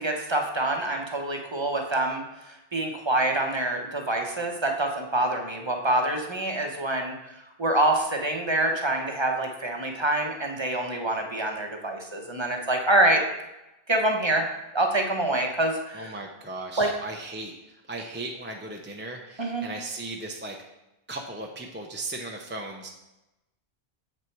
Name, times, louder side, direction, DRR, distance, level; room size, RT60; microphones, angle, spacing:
voice 1, 0.0-2.2 2.7-7.1 7.6-13.2 13.9-14.5 14.7-16.1 16.8-16.9 19.4-19.6, right 1 dB, 30° right, 2 dB, 1.0 m, -26 dB
voice 2, 15.9-20.6 21.1-22.9, right 2 dB, 15° right, 1 dB, 0.6 m, -37 dB
7.4 x 6.5 x 4.6 m, 0.95 s
omnidirectional pair, 1.0 m